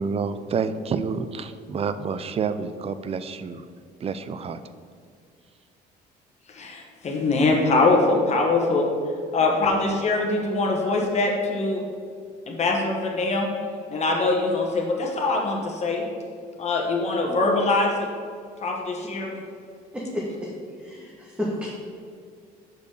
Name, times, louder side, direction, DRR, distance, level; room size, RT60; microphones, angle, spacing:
voice 1, 0.0-3.7 4.0-4.6, right 5 dB, 35° right, 12 dB, 0.5 m, -28 dB
voice 2, 6.5-8.9 9.3-11.8 12.5-13.5 13.9-16.0 16.6-18.1 18.6-19.4, left 3 dB, 40° left, 0 dB, 1.5 m, -23 dB
voice 3, 19.9-20.5 20.8-21.0 21.4-21.7, left 1 dB, 5° right, -5 dB, 1.5 m, -30 dB
6.8 x 5.3 x 6.6 m, 2.2 s
cardioid pair, 110°, 17 cm